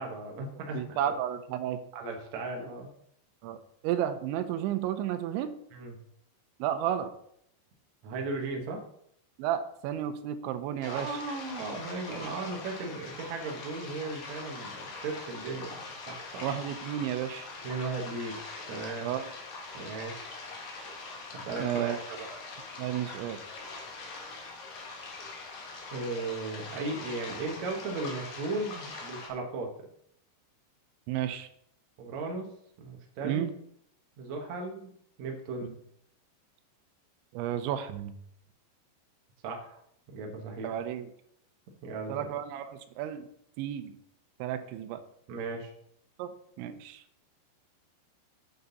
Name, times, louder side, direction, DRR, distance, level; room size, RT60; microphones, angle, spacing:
voice 1, 0.0-1.1 1.9-2.9 5.7-6.0 8.0-8.8 10.9-15.8 16.1-16.5 17.6-18.4 18.7-19.1 19.7-20.2 21.3-22.3 25.9-29.7 32.0-32.5 32.8-33.5 34.2-34.9 35.2-35.7 39.4-39.8 40.1-40.8 41.8-42.3 45.3-45.7, right 3 dB, 60° right, 1 dB, 2.0 m, -36 dB
voice 2, 0.7-1.8 3.4-3.6 3.8-5.5 6.6-7.1 9.4-11.1 12.1-12.3 16.4-17.5 19.0-19.3 21.6-22.0 22.8-23.4 31.1-31.5 33.2-33.5 35.6-35.7 37.3-38.1 40.6-41.1 42.1-43.3 43.6-43.9 44.4-45.0 46.2-46.3 46.6-47.0, right 10 dB, 90° right, 9 dB, 3.1 m, -32 dB
sound 1, 10.8-29.3, left 3 dB, 60° left, 3.0 m, -43 dB
9.2 x 7.8 x 4.1 m, 0.70 s
omnidirectional pair, 5.2 m